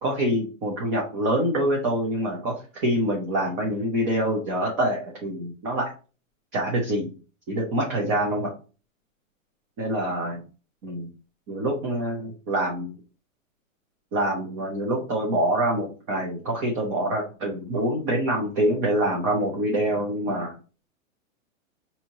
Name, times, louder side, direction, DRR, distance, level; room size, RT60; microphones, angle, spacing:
voice 1, 0.0-5.9 6.5-7.1 7.5-8.5 9.8-10.4 10.8-11.1 11.5-12.9 14.1-20.5, right 1 dB, 20° right, -2 dB, 0.6 m, -25 dB
4.9 x 2.7 x 2.9 m, 0.35 s
hypercardioid pair, 160°, 41 cm